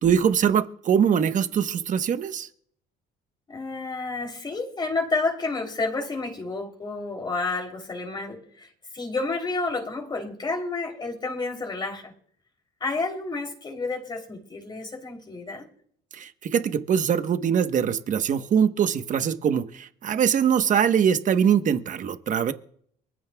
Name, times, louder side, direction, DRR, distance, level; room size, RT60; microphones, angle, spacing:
voice 1, 0.0-2.5 16.1-22.5, right 8 dB, 50° right, 9 dB, 1.1 m, -22 dB
voice 2, 3.5-12.1 12.8-15.7, left 3 dB, 25° left, 3 dB, 3.3 m, -30 dB
23.5 x 15.0 x 2.3 m, 0.62 s
cardioid pair, 110°, 17 cm